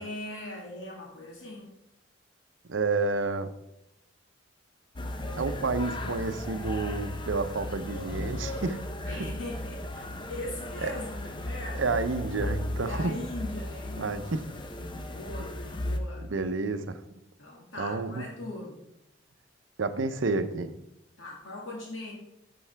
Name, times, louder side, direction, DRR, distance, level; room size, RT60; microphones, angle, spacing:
voice 1, 0.0-1.8 9.1-11.8 12.8-14.3 15.1-16.3 17.4-18.8 21.2-22.1, left 2 dB, 80° left, -2 dB, 2.0 m, -40 dB
voice 2, 2.7-3.5 5.4-8.8 10.8-10.9 11.7-13.1 14.0-14.4 16.2-17.0 17.8-18.3 19.8-20.7, right 3 dB, 80° right, 10 dB, 0.7 m, -30 dB
sound 1, 5.0-16.0, left 1 dB, 25° left, 0.6 m, -36 dB
13.0 x 5.4 x 3.4 m, 0.83 s
head